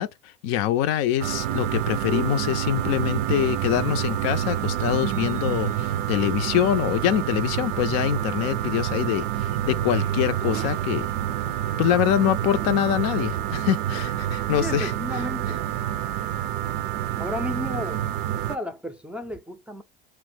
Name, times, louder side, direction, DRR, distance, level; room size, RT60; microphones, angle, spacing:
voice 1, 0.0-11.1 11.8-14.9, left 11 dB, 60° left, 0.4 m, -24 dB
sound 1, 1.2-18.6, right 11 dB, 70° right, 0.5 m, -27 dB
voice 2, 14.6-15.7 17.2-18.1 18.5-19.8, left 1 dB, 5° right, 0.5 m, -33 dB
3.0 x 2.0 x 3.3 m
hypercardioid pair, 80°, 29 cm